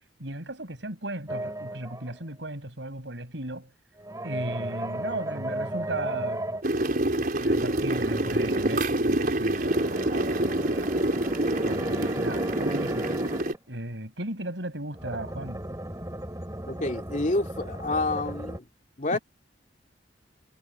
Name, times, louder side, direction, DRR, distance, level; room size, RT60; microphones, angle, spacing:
voice 1, 0.2-3.7 4.2-6.5 7.4-10.9 11.6-13.1 13.7-15.6 19.1-19.2, right 1 dB, 75° right, 6.3 m, -36 dB
sound 1, 1.3-2.2 4.0-6.6 7.5-8.8 9.5-13.6 14.9-18.6, right 1 dB, 20° right, 3.3 m, -35 dB
sound 2, 6.6-13.5, right 1 dB, 50° right, 4.8 m, -26 dB
voice 2, 16.7-18.6 19.0-19.2, left 2 dB, 45° left, 2.4 m, -28 dB
head